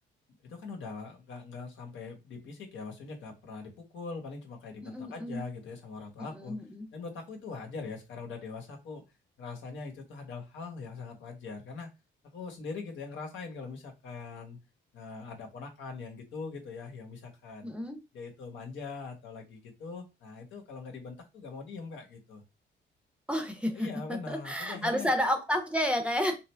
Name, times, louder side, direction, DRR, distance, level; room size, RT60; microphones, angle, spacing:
voice 1, 0.4-6.6 6.9-9.0 9.4-11.9 12.3-14.6 14.9-17.7 18.1-22.4 23.7-25.1, left 4 dB, 70° left, 1.1 m, -42 dB
voice 2, 4.8-5.5 6.2-6.9 17.6-18.0 23.3-26.4, equal, 5° right, 0.7 m, -31 dB
3.0 x 2.5 x 3.3 m
cardioid pair, 90°, 20 cm